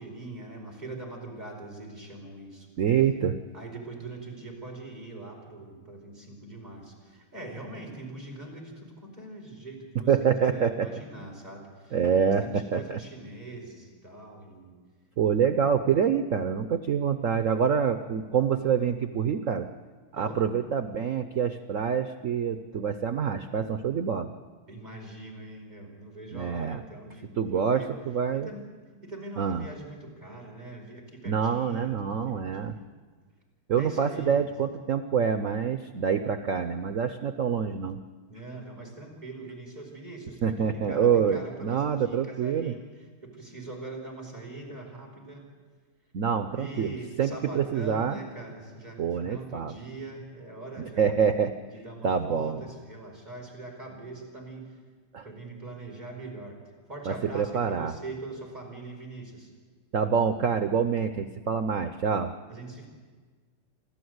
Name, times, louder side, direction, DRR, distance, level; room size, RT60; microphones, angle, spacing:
voice 1, 0.0-2.7 3.5-12.0 12.2-14.7 20.1-20.4 24.7-27.9 28.3-28.7 29.0-32.8 33.8-34.5 38.3-45.5 46.5-51.2 51.7-54.8 55.2-56.6 56.9-59.5 62.5-62.9, right 2 dB, 20° right, -1 dB, 5.0 m, -42 dB
voice 2, 2.8-3.4 10.1-11.0 11.9-13.0 15.2-19.7 20.1-24.3 26.3-26.8 27.4-28.5 29.4-29.6 31.3-32.7 33.7-38.0 40.4-42.7 46.1-46.9 47.2-48.2 49.0-49.7 51.0-51.5 52.0-52.6 55.1-55.2 57.1-57.9 59.9-62.3, right 7 dB, 90° right, 9 dB, 0.7 m, -26 dB
28.5 x 12.5 x 8.0 m, 1.5 s
omnidirectional pair, 2.4 m